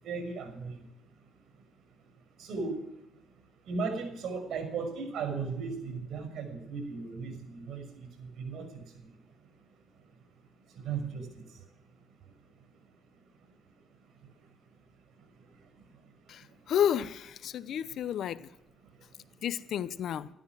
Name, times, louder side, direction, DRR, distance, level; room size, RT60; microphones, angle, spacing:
voice 1, 0.0-0.7 2.4-2.8 3.7-8.8 10.8-11.3, right 4 dB, 70° right, 5.9 m, -36 dB
voice 2, 16.7-18.4 19.4-20.3, left 9 dB, 70° left, 0.8 m, -31 dB
13.5 x 12.5 x 6.1 m
cardioid pair, 90°, 0 cm